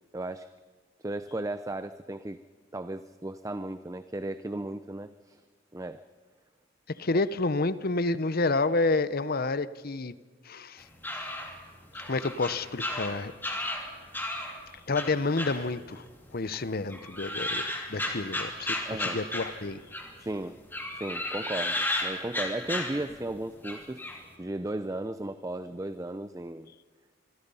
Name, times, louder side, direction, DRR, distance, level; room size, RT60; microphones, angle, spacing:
voice 1, 0.1-0.5 1.0-2.4 2.7-5.4 5.7-6.0 18.8-19.2 20.2-20.6 21.0-24.0 24.4-26.7, right 1 dB, 15° right, 12 dB, 0.5 m, -35 dB
voice 2, 6.9-10.1 10.4-10.8 11.1-11.2 12.1-13.3 14.9-16.0 16.3-19.8, left 3 dB, 50° left, 15 dB, 0.8 m, -29 dB
sound 1, 10.8-14.6 15.0-16.2 16.5-20.2 20.7-23.3 23.6-24.2, left 1 dB, 10° left, 2.8 m, -34 dB
25.5 x 24.0 x 5.5 m, 1.5 s
head